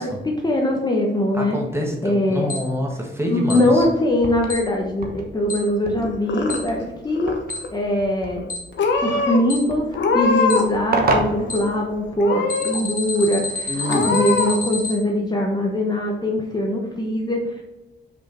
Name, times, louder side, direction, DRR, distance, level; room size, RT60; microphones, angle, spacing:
voice 1, 0.0-1.6 2.0-2.5 3.2-7.4 7.7-8.5 9.0-9.9 10.1-17.6, left 1 dB, 20° left, 0 dB, 1.1 m, -22 dB
voice 2, 1.3-3.8 13.7-14.1, equal, 15° right, 0 dB, 1.4 m, -26 dB
Alarm, 2.5-2.6 3.5-3.6 4.5-4.6 5.5-5.6 6.5-6.6 7.5-7.6 8.5-8.6 9.5-9.6 10.5-10.6 11.5-11.6 12.5-14.9, left 3 dB, 45° left, 1.2 m, -28 dB
sound 1, 3.6-12.3, right 3 dB, 55° right, 1.1 m, -31 dB
Purr / Meow, 6.0-6.8 7.1-7.7 8.4-8.5 8.8-9.4 9.9-10.8 11.1-11.8 12.2-12.8 13.2-13.3 13.8-14.5, left 4 dB, 80° left, 1.1 m, -23 dB
5.8 x 5.0 x 4.3 m, 1.0 s
wide cardioid pair, 135°, 19 cm